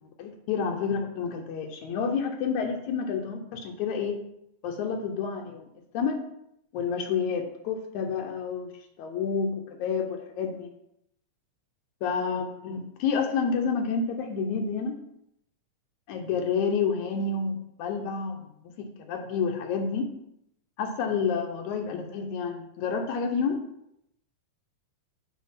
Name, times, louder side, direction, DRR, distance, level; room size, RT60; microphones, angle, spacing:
voice 1, 0.2-4.2 4.6-5.7 5.9-6.2 6.7-8.7 9.0-10.7 12.0-15.0 16.1-20.1 20.8-23.6, left 5 dB, 80° left, 4 dB, 2.1 m, -29 dB
6.4 x 3.8 x 5.7 m, 0.78 s
omnidirectional pair, 3.3 m